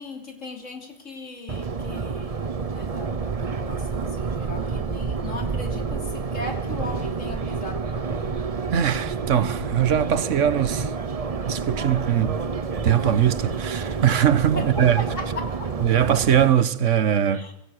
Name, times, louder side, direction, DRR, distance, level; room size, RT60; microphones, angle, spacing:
voice 1, 0.0-8.5 14.5-15.3 15.6-15.9 17.3-17.5, left 1 dB, 90° left, 3.7 m, -38 dB
Subway metro underground, 1.5-16.5, right 5 dB, 35° right, 0.9 m, -29 dB
voice 2, 8.7-10.9 11.4-12.4 12.8-15.0 15.8-17.5, right 9 dB, 80° right, 1.4 m, -21 dB
24.0 x 16.5 x 6.5 m
omnidirectional pair, 1.3 m